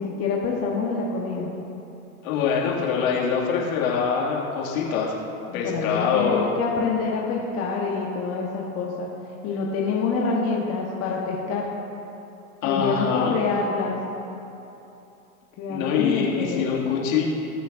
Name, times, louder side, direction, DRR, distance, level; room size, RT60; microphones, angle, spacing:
voice 1, 0.0-1.5 5.5-9.1 9.4-11.7 12.6-14.0 15.6-16.7, left 4 dB, 35° left, -3 dB, 1.3 m, -26 dB
voice 2, 2.2-5.1 5.5-6.5 12.6-13.3 15.7-17.2, left 6 dB, 65° left, -4 dB, 2.5 m, -24 dB
20.0 x 6.8 x 2.7 m, 2.9 s
hypercardioid pair, 110°, 44 cm